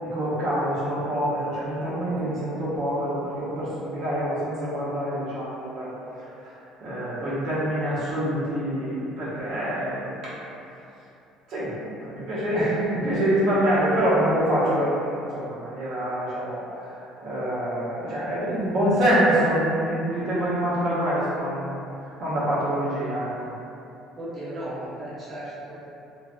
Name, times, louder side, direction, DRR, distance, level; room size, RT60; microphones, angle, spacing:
voice 1, 0.0-5.9 6.2-6.3 6.8-10.3 11.5-23.5, right 1 dB, 65° right, -10 dB, 0.8 m, -26 dB
voice 2, 24.2-25.9, right 1 dB, 30° right, -11 dB, 0.7 m, -35 dB
2.4 x 2.1 x 2.4 m, 2.7 s
cardioid pair, 110°, 0 cm